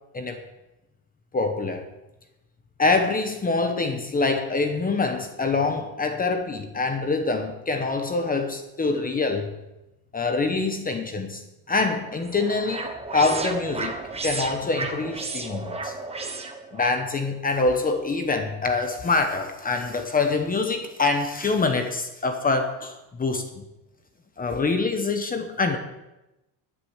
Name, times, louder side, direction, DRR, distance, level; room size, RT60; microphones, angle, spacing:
voice 1, 1.3-1.8 2.8-9.5 10.1-13.9 14.2-15.9 16.7-23.4 24.4-25.8, left 3 dB, 20° left, 6 dB, 1.0 m, -25 dB
sound 1, 11.8-17.0, right 3 dB, 15° right, 1.2 m, -33 dB
11.5 x 9.9 x 7.2 m, 0.99 s
cardioid pair, 160°, 45 cm